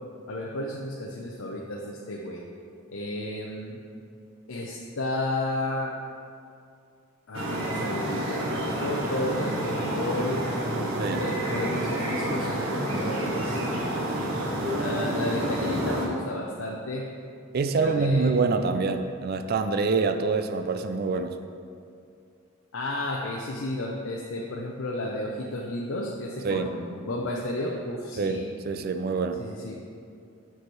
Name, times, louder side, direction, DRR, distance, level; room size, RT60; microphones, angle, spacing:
voice 1, 0.3-2.4 2.9-3.8 4.5-5.9 7.3-10.4 11.2-13.7 14.8-17.0 17.8-18.3 22.7-28.5 29.4-29.8, left 1 dB, 65° left, -2 dB, 0.6 m, -32 dB
sound 1, 7.3-16.1, right 1 dB, 80° right, 1.1 m, -29 dB
voice 2, 17.5-21.3 26.4-26.7 28.2-29.4, right 4 dB, 45° right, 8 dB, 0.4 m, -26 dB
6.8 x 4.6 x 4.6 m, 2.4 s
head